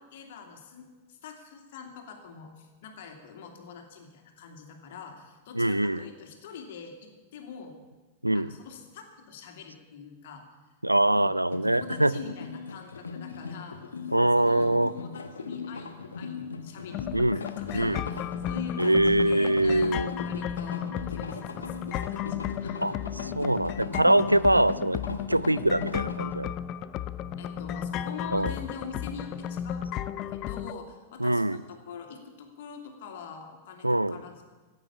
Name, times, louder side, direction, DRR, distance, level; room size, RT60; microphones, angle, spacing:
voice 1, 0.0-7.7 8.3-10.4 11.1-11.3 11.7-13.8 14.3-22.9 27.4-34.4, left 5 dB, 55° left, 3 dB, 2.6 m, -44 dB
voice 2, 5.6-6.0 8.2-8.5 10.8-12.1 14.1-14.9 17.1-17.4 17.7-18.0 18.8-20.1 22.8-22.9 23.2-26.5 28.3-28.5 31.2-31.6 33.8-34.1, right 1 dB, 85° right, 17 dB, 0.4 m, -23 dB
sound 1, 11.5-26.2, left 4 dB, 75° left, 1.1 m, -39 dB
sound 2, 16.9-30.7, left 10 dB, 40° left, 0.5 m, -34 dB
15.5 x 8.6 x 8.5 m, 1.3 s
figure-of-eight pair, 90°, 0 cm